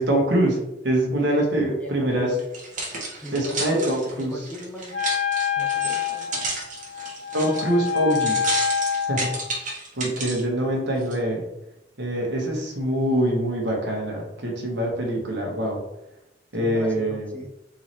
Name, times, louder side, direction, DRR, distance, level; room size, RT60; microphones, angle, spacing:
voice 1, 0.0-2.4 3.3-4.4 7.3-8.4 9.0-9.3 9.9-11.5 12.0-15.8 16.5-17.4, right 1 dB, 65° right, 0 dB, 1.3 m, -24 dB
voice 2, 1.6-2.4 3.2-3.9 4.2-5.0 5.6-6.3 16.5-17.5, equal, 5° left, -1 dB, 0.5 m, -37 dB
sound 1, 2.4-10.4 11.0-11.1, right 2 dB, 45° right, 1.4 m, -32 dB
Wind instrument woodwind instrument, 4.9-9.5, left 7 dB, 70° left, 1.3 m, -26 dB
4.2 x 3.6 x 3.1 m, 0.87 s
head